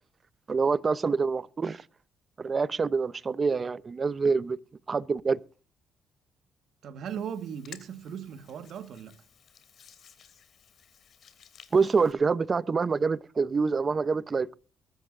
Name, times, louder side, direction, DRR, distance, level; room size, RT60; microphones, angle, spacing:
voice 1, 0.5-1.8 2.4-4.6 4.9-5.4 11.7-14.5, right 4 dB, 35° right, 0.7 m, -26 dB
voice 2, 6.8-9.2, right 8 dB, 70° right, 1.6 m, -38 dB
Hands, 7.1-12.1, left 7 dB, 60° left, 2.8 m, -54 dB
22.5 x 12.5 x 2.6 m
cardioid pair, 90°, 0 cm